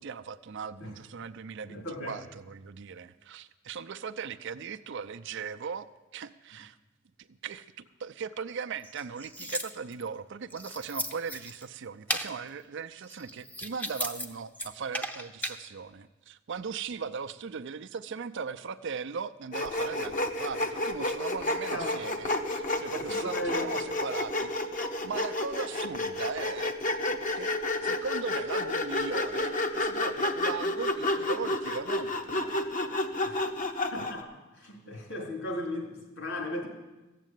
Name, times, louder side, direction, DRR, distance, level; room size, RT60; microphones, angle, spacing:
voice 1, 0.0-6.8 7.2-7.7 8.0-26.8 27.4-27.5 27.8-32.6, right 6 dB, 60° right, 10 dB, 0.5 m, -38 dB
voice 2, 1.7-2.2 21.7-22.0 22.9-23.7 33.2-33.5 33.9-36.7, left 1 dB, 65° left, 1 dB, 3.4 m, -36 dB
sound 1, 8.8-10.1 10.5-11.7 12.1-12.3 13.0-14.3 14.5-15.6, equal, 10° left, 0.7 m, -36 dB
Sawing, 19.5-34.2, left 2 dB, 40° left, 0.9 m, -31 dB
14.5 x 7.5 x 9.2 m, 1.1 s
head